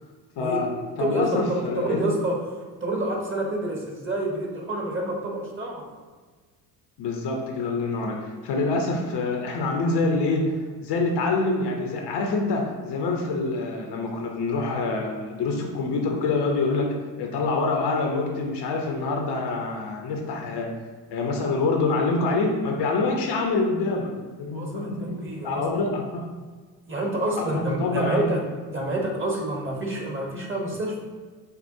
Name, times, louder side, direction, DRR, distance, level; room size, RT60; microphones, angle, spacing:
voice 1, 0.4-0.7 1.0-2.1 7.0-10.5 10.8-20.7 21.1-24.1 24.4-26.2 27.4-28.3, left 3 dB, 55° left, 1 dB, 0.8 m, -26 dB
voice 2, 1.0-2.4 2.8-5.9 24.5-25.6 26.9-28.4 28.7-31.0, right 1 dB, 25° right, -1 dB, 1.3 m, -28 dB
6.7 x 2.4 x 2.7 m, 1.4 s
hypercardioid pair, 65°, 50 cm